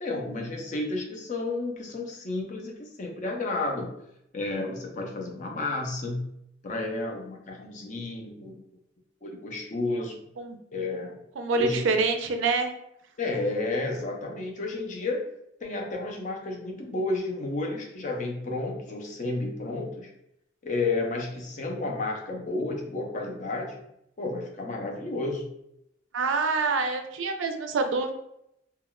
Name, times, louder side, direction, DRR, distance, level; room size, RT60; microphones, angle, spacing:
voice 1, 0.0-3.9 4.3-6.3 6.6-8.6 9.2-10.2 10.7-11.2 11.5-11.9 13.2-15.2 15.6-20.1 20.6-23.8 24.2-25.5, left 2 dB, 40° left, 1 dB, 0.5 m, -31 dB
voice 2, 11.4-12.7 26.1-28.1, right 4 dB, 80° right, 6 dB, 0.4 m, -26 dB
3.5 x 2.3 x 2.2 m, 0.78 s
head